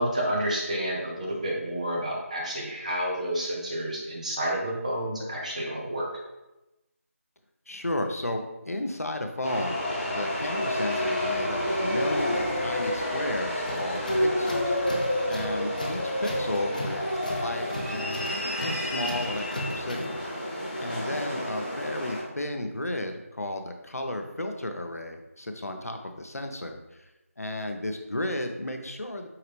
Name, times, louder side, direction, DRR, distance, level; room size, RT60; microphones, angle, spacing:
voice 1, 0.0-6.1, right 1 dB, 30° right, -3 dB, 0.8 m, -30 dB
voice 2, 7.7-9.8 10.2-14.8 15.3-20.2 20.8-26.8 27.4-29.3, left 1 dB, 80° left, 5 dB, 0.6 m, -33 dB
sound 1, 9.4-22.2, left 1 dB, 15° left, 1.5 m, -29 dB
Tools, 13.7-20.2, left 1 dB, 30° left, 0.4 m, -38 dB
4.8 x 3.0 x 3.1 m, 1.0 s
figure-of-eight pair, 165°, 8 cm